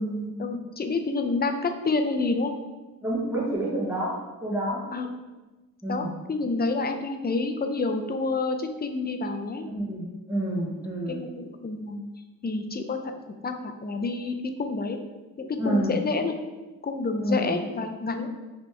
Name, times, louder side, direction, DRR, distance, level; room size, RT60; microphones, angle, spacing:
voice 1, 0.0-2.5 4.9-5.1 5.9-9.7 11.1-12.0 12.4-13.1 13.4-15.0 15.4-16.4 16.8-18.3, left 3 dB, 25° left, 6 dB, 0.4 m, -28 dB
voice 2, 3.0-4.2 4.4-4.8 5.8-6.1 9.7-11.2 15.6-16.0 17.2-17.6, right 1 dB, 5° right, -5 dB, 0.9 m, -28 dB
4.1 x 3.0 x 3.3 m, 1.2 s
cardioid pair, 55°, 37 cm